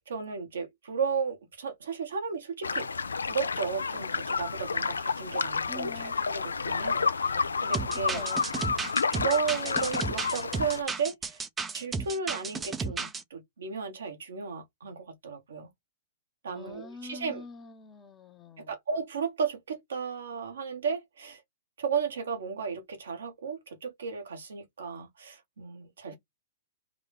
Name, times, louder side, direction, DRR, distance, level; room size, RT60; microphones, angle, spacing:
voice 1, 0.0-2.9 3.3-8.2 9.1-11.4 11.7-15.7 16.4-17.4 18.6-21.4 21.8-26.2, right 6 dB, 75° right, 1.1 m, -34 dB
sound 1, 2.6-10.8, left 5 dB, 85° left, 0.3 m, -30 dB
voice 2, 5.7-6.2 8.1-8.4 16.5-18.7 26.1-26.2, left 3 dB, 20° left, 0.8 m, -44 dB
sound 2, 7.7-13.2, right 4 dB, 15° right, 0.5 m, -33 dB
3.7 x 2.3 x 3.4 m
hypercardioid pair, 115°, 0 cm